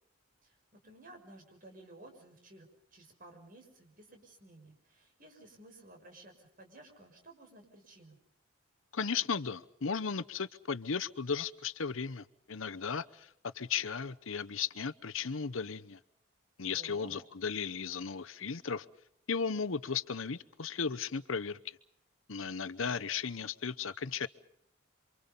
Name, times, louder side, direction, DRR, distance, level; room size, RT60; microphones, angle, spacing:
voice 1, 0.4-8.2 16.7-17.2, right 2 dB, 45° right, 6.0 m, -55 dB
voice 2, 8.9-16.0 16.6-18.9 19.3-21.8 22.3-24.3, left 6 dB, 75° left, 0.9 m, -35 dB
28.0 x 25.0 x 5.4 m
head